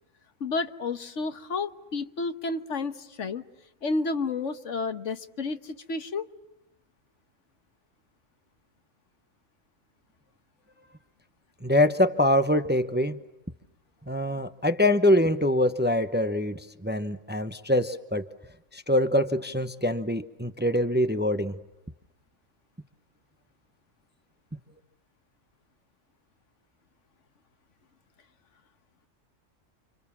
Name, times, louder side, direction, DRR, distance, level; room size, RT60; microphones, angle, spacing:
voice 1, 0.4-3.4 3.8-6.3, left 3 dB, 75° left, 10 dB, 1.6 m, -31 dB
voice 2, 11.6-13.2 14.1-18.3 18.7-21.5, left 1 dB, 10° right, 10 dB, 0.8 m, -24 dB
29.5 x 27.0 x 7.3 m, 0.89 s
omnidirectional pair, 1.3 m